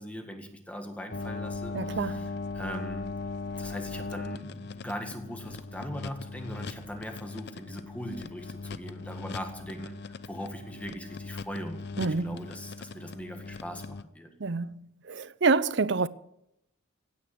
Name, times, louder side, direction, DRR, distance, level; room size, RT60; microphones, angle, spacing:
voice 1, 0.0-3.1 3.6-14.3, equal, 5° left, 1.8 m, -40 dB
sound 1, 1.1-14.0, left 3 dB, 50° left, 0.6 m, -39 dB
voice 2, 1.7-2.3 12.0-12.5 14.4-14.8 15.1-16.1, right 4 dB, 55° right, 0.6 m, -27 dB
16.0 x 9.5 x 8.0 m
head